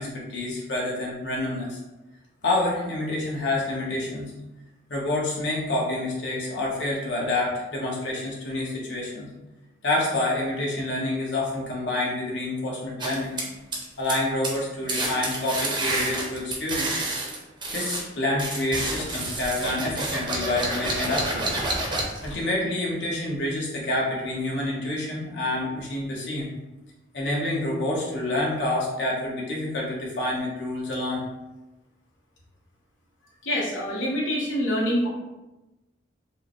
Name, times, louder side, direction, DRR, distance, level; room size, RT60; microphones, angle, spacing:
voice 1, 0.0-1.8 2.4-4.3 4.9-9.3 9.8-13.4 14.0-17.0 17.7-21.5 22.2-26.5 27.1-31.2, left 2 dB, 65° left, -4 dB, 1.0 m, -28 dB
sound 1, 13.0-14.2 14.4-14.6 14.9-18.0 18.4-22.3, right 2 dB, 25° right, 0.6 m, -29 dB
voice 2, 33.4-35.1, equal, 90° left, -4 dB, 1.0 m, -25 dB
4.7 x 2.1 x 3.0 m, 1.0 s
head